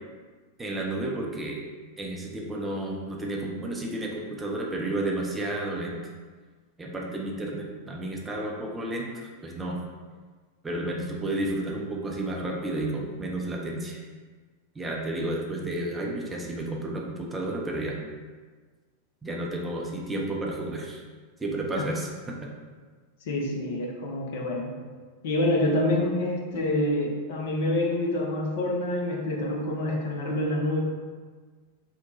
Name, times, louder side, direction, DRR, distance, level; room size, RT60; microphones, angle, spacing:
voice 1, 0.6-1.7 2.0-6.0 6.8-9.8 10.6-14.0 14.8-18.0 19.2-21.0 21.4-22.5, right 1 dB, 10° right, -2 dB, 0.5 m, -32 dB
voice 2, 23.2-24.7 25.2-30.8, left 1 dB, 55° left, 0 dB, 0.5 m, -27 dB
2.9 x 2.1 x 4.0 m, 1.4 s
figure-of-eight pair, 90°, 0 cm